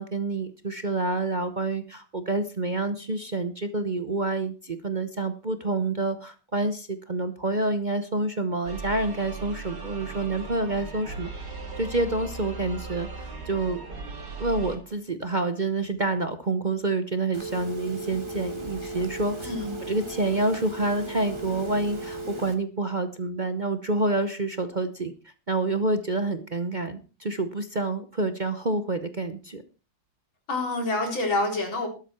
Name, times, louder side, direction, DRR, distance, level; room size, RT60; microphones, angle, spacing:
voice 1, 0.0-11.3 11.8-13.8 14.4-19.5 19.8-25.1 25.5-29.6, right 2 dB, 45° right, 9 dB, 0.6 m, -28 dB
sound 1, 8.7-14.8, right 4 dB, 60° right, 3.9 m, -38 dB
Telephone, 17.3-22.5, right 2 dB, 15° right, 1.8 m, -36 dB
voice 2, 30.5-31.9, left 2 dB, 75° left, 2 dB, 4.7 m, -27 dB
12.5 x 12.0 x 4.4 m, 0.34 s
omnidirectional pair, 2.2 m